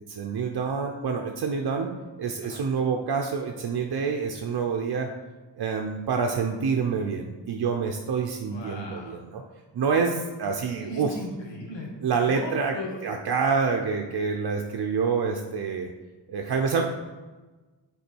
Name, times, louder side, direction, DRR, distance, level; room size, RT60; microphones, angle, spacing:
voice 1, 0.1-1.9 2.2-5.1 5.6-9.4 9.7-11.1 12.0-12.8 13.0-15.9 16.3-16.8, right 5 dB, 65° right, 3 dB, 0.7 m, -27 dB
voice 2, 8.5-9.2 10.8-11.9 12.3-13.0, left 1 dB, 85° left, 0 dB, 1.6 m, -37 dB
8.3 x 4.6 x 4.5 m, 1.3 s
wide cardioid pair, 155°, 42 cm